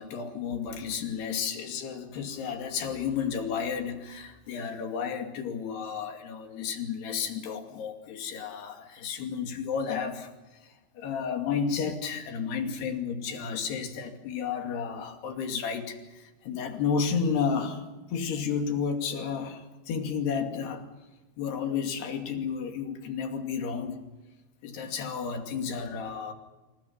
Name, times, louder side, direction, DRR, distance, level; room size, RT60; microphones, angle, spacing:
voice 1, 0.0-10.3 11.0-17.8 18.1-20.9 21.4-24.0 24.6-26.3, left 6 dB, 70° left, 5 dB, 4.5 m, -32 dB
27.5 x 27.0 x 5.8 m, 1.1 s
omnidirectional pair, 4.9 m